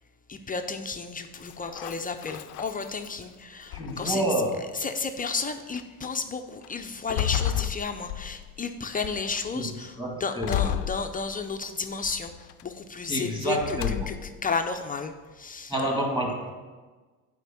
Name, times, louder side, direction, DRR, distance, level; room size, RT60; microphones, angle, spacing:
voice 1, 0.3-4.2 4.7-15.7, left 4 dB, 20° left, 6 dB, 0.5 m, -33 dB
sound 1, 1.3-3.2 3.7-4.4 5.2-5.3 5.8-6.1 6.6-8.6 9.0-9.5 10.4-11.6 12.0-12.6 13.6-14.4, left 12 dB, 85° left, 0.5 m, -32 dB
voice 2, 3.7-4.6 9.5-9.6 10.0-10.7 13.1-14.1 15.7-16.5, right 1 dB, 10° right, 0 dB, 2.1 m, -28 dB
8.1 x 5.1 x 7.1 m, 1.3 s
cardioid pair, 115°, 41 cm